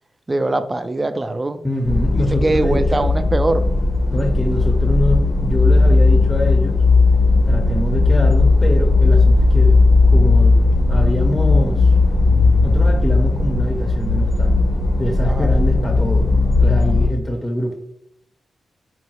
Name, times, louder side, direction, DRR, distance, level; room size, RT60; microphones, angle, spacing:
voice 1, 0.3-1.6 2.2-3.7 15.2-15.5, right 2 dB, 30° right, 0.3 m, -22 dB
voice 2, 1.6-3.1 4.1-6.8 7.5-9.8 10.1-11.9 12.6-14.6 15.0-16.3 16.6-17.7, left 1 dB, 15° left, 0.6 m, -24 dB
sound 1, 1.8-17.1, left 3 dB, 75° left, 0.6 m, -15 dB
3.8 x 2.0 x 2.9 m
supercardioid pair, 45°, 0 cm